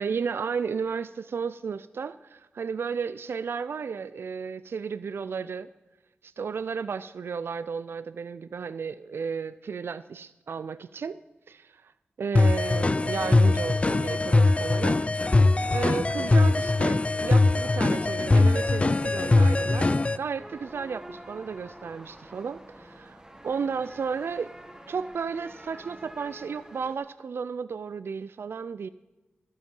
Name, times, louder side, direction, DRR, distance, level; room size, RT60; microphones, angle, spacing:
voice 1, 0.0-5.7 6.2-11.2 11.5-11.9 12.2-24.6 24.9-28.9, right 6 dB, 80° right, 15 dB, 0.3 m, -33 dB
sound 1, 12.3-20.2, left 2 dB, 30° left, 0.4 m, -21 dB
sound 2, 20.4-27.0, right 1 dB, 20° right, 1.5 m, -47 dB
12.5 x 12.5 x 5.3 m, 1.1 s
wide cardioid pair, 65°, 4 cm